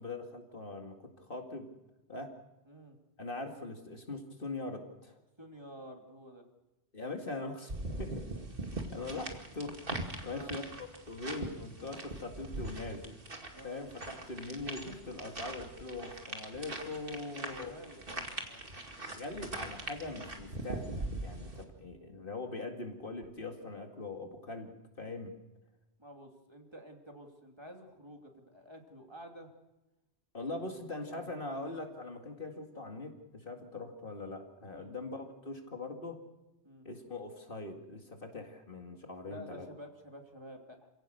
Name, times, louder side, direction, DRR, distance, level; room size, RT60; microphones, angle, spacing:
voice 1, 0.0-1.7 2.1-2.3 3.2-5.2 6.9-7.7 8.0-8.3 8.9-9.8 10.2-13.2 13.6-17.7 19.1-25.3 30.3-36.2 36.8-39.7, left 2 dB, 50° left, 3 dB, 2.4 m, -42 dB
voice 2, 2.7-3.0 5.4-6.5 10.2-10.6 13.5-13.8 17.1-18.6 26.0-29.5 30.6-31.3 34.7-34.9 36.6-36.9 39.3-40.9, equal, 25° right, 2 dB, 2.8 m, -51 dB
sound 1, 7.7-21.6, right 2 dB, 55° right, 2.5 m, -42 dB
28.0 x 17.0 x 6.7 m, 1.0 s
omnidirectional pair, 1.1 m